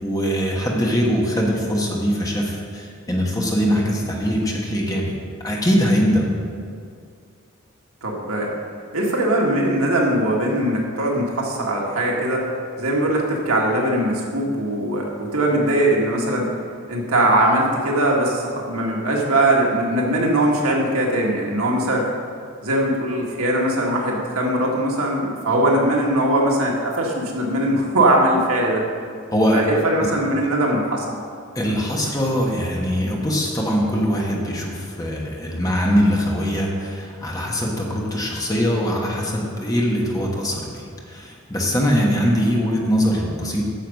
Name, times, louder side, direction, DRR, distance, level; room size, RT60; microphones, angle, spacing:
voice 1, 0.0-5.1 5.4-6.3 29.3-29.6 30.0-30.1 31.5-43.6, equal, 15° left, -2 dB, 1.3 m, -22 dB
voice 2, 8.0-8.5 8.9-12.4 12.8-16.5 16.9-22.1 22.6-28.8 29.5-31.1, right 1 dB, 85° right, -2 dB, 1.7 m, -20 dB
9.3 x 7.1 x 5.3 m, 2.3 s
head